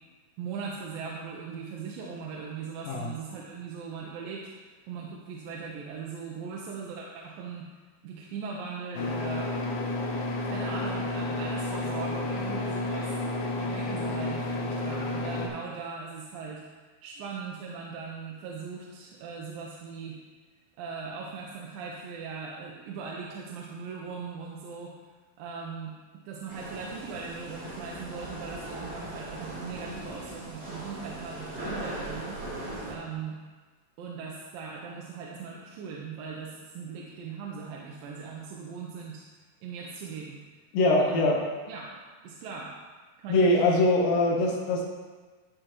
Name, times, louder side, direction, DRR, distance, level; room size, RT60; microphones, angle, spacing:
voice 1, 0.4-7.7 8.0-9.5 10.4-13.1 13.6-16.6 17.0-20.2 20.8-25.0 25.4-32.4 32.9-33.4 34.0-39.2 39.6-40.4 41.0-41.4 41.7-41.9 42.2-42.7 43.2-43.8, right 5 dB, 85° right, -2 dB, 2.5 m, -39 dB
sound 1, 8.9-15.5, left 2 dB, 65° left, 1.5 m, -31 dB
sound 2, 26.5-32.9, right 1 dB, 45° right, 1.3 m, -39 dB
voice 2, 40.7-41.4 43.3-44.8, left 2 dB, 85° left, -2 dB, 3.0 m, -23 dB
13.0 x 4.9 x 3.0 m, 1.4 s
omnidirectional pair, 4.0 m